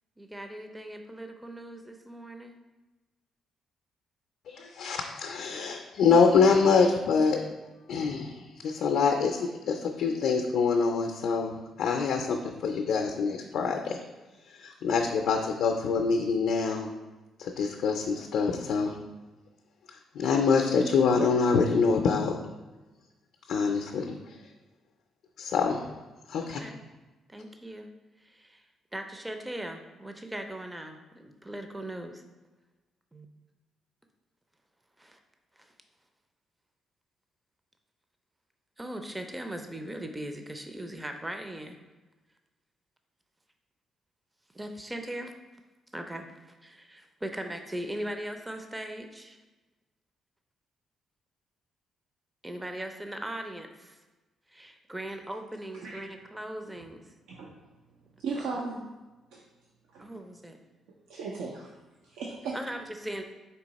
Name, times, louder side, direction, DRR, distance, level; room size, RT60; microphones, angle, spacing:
voice 1, 0.2-2.5 26.4-26.8 27.3-27.9 28.2-32.2 33.1-33.3 35.0-35.2 35.6-35.7 38.8-41.8 44.5-45.4 45.9-49.4 52.4-54.0 54.5-57.1 60.0-60.6 62.5-63.2, right 1 dB, 15° right, 5 dB, 0.4 m, -39 dB
voice 2, 4.5-7.4 7.9-14.0 14.5-16.9 17.4-19.0 20.1-22.4 23.5-24.1 25.4-25.8 26.3-26.6, left 5 dB, 75° left, 2 dB, 0.4 m, -25 dB
voice 3, 58.2-58.8 59.3-59.4 59.9-60.1 61.1-61.7 62.0-62.6, right 4 dB, 90° right, -2 dB, 0.5 m, -36 dB
4.6 x 2.8 x 4.0 m, 1.2 s
cardioid pair, 90°, 0 cm